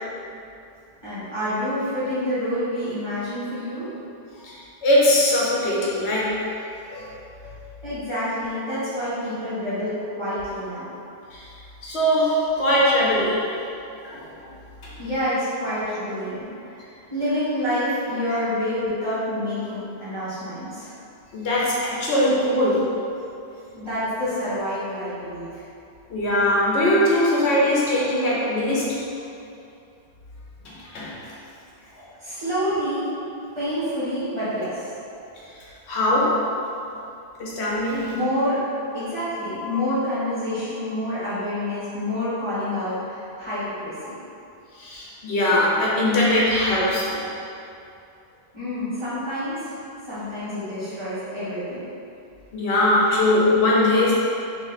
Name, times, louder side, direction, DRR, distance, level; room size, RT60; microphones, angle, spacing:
voice 1, 1.0-3.9 7.8-10.9 15.0-20.9 23.7-25.6 32.2-33.1 33.5-34.8 38.1-38.6 38.9-44.2 48.5-49.8 50.1-51.8, left 1 dB, 25° right, -14 dB, 1.4 m, -28 dB
voice 2, 4.4-6.4 6.9-7.1 7.4-7.5 11.3-11.4 11.8-13.5 14.0-14.3 14.8-14.9 21.3-22.9 26.1-29.0 30.6-31.3 31.9-32.0 35.9-36.5 37.4-38.1 39.6-39.7 44.8-47.3 52.5-54.1, left 1 dB, 80° left, -6 dB, 1.1 m, -21 dB
3.1 x 3.0 x 4.0 m, 2.6 s
omnidirectional pair, 1.1 m